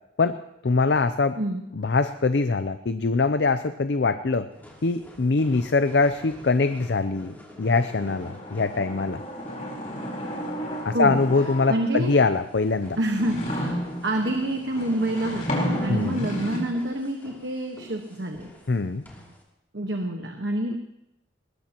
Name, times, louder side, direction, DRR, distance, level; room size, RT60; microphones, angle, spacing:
voice 1, 0.6-1.4 1.7-4.5 4.8-9.2 10.8-13.0 15.9-16.3 18.7-19.0, left 3 dB, 60° left, 10 dB, 0.5 m, -23 dB
sound 1, 4.5-19.4, equal, 10° left, 2.9 m, -48 dB
sound 2, 7.8-12.1 12.7-16.6, equal, 40° left, 4.1 m, -33 dB
voice 2, 10.9-11.2 11.7-12.2 13.0-13.8 14.0-18.5 19.7-20.8, right 1 dB, 65° right, 3 dB, 1.4 m, -27 dB
21.0 x 19.5 x 3.0 m, 0.83 s
head